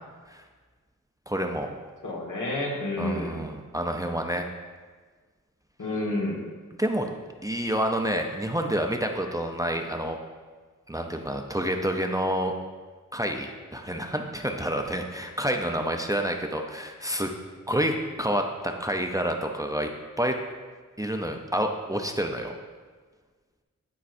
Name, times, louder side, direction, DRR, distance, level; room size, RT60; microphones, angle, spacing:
voice 1, 1.3-1.7 3.0-4.5 6.8-7.1 7.4-10.2 10.9-12.5 13.1-17.3 17.7-19.9 20.2-20.4 21.0-22.6, equal, 10° right, 3 dB, 0.5 m, -28 dB
voice 2, 2.0-3.4 5.8-6.4, left 1 dB, 80° left, -3 dB, 1.6 m, -29 dB
12.5 x 4.6 x 2.6 m, 1.4 s
wide cardioid pair, 70°, 31 cm